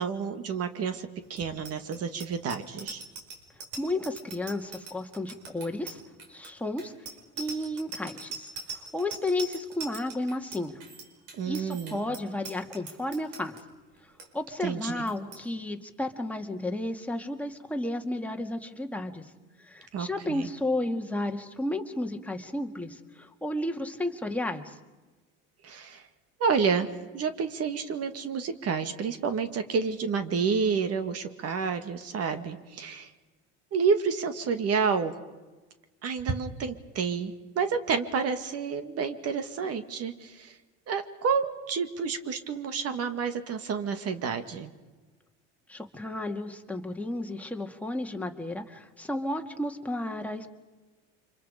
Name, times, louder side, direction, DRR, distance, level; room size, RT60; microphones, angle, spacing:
voice 1, 0.0-3.0 11.3-12.2 14.6-15.0 19.9-20.5 25.6-26.0 26.4-26.9 27.1-33.1 33.7-35.1 36.0-40.6 40.9-44.7, right 5 dB, 45° right, 9 dB, 1.9 m, -29 dB
Bicycle bell, 1.3-13.6 14.0-14.3 14.5-14.8 15.1-15.4, right 4 dB, 60° right, 4.8 m, -42 dB
voice 2, 3.8-6.0 6.3-6.9 7.4-8.5 8.9-10.7 11.4-13.6 14.3-19.3 19.7-24.8 45.7-50.5, left 1 dB, 5° left, 3 dB, 2.0 m, -32 dB
30.0 x 25.5 x 5.1 m, 1.2 s
supercardioid pair, 105°, 33 cm